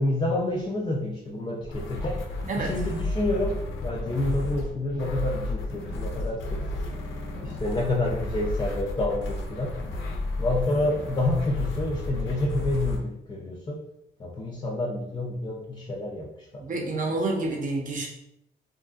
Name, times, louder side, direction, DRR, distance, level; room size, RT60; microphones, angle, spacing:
voice 1, 0.0-2.2 2.5-6.8 7.4-9.7 10.4-13.8 14.2-16.9, left 2 dB, 25° left, -2 dB, 0.4 m, -28 dB
sound 1, 1.6-13.0, left 2 dB, 75° left, 0.6 m, -32 dB
voice 2, 16.6-18.1, right 2 dB, 40° right, 1 dB, 0.7 m, -28 dB
2.7 x 2.4 x 2.4 m, 0.79 s
cardioid pair, 90°, 20 cm